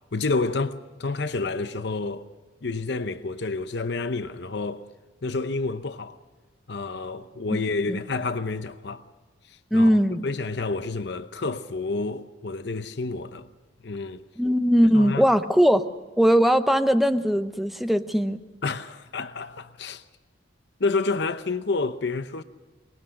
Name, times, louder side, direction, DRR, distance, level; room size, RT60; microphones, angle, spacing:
voice 1, 0.1-2.2 2.6-4.8 5.2-6.1 6.7-9.0 9.7-13.5 13.8-14.2 14.9-15.2 18.6-20.0 20.8-22.4, left 3 dB, 60° left, 0.8 m, -29 dB
voice 2, 9.7-10.3 14.4-15.9 16.2-18.4, equal, ahead, 0.6 m, -20 dB
24.0 x 21.0 x 6.4 m
head